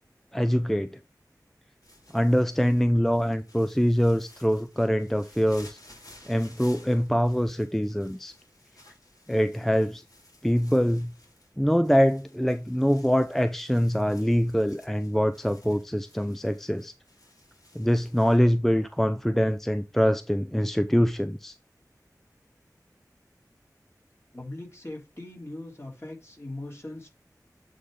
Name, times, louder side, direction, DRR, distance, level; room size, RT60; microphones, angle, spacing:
voice 1, 0.3-0.9 2.1-5.8 6.3-8.3 9.3-10.0 10.4-11.1 11.6-16.9 17.7-21.5, equal, 5° left, 0.5 m, -24 dB
sound 1, 1.8-18.4, left 1 dB, 55° left, 3.4 m, -55 dB
voice 2, 24.3-27.1, left 1 dB, 40° left, 3.1 m, -40 dB
8.4 x 3.9 x 4.8 m
wide cardioid pair, 40°, 7 cm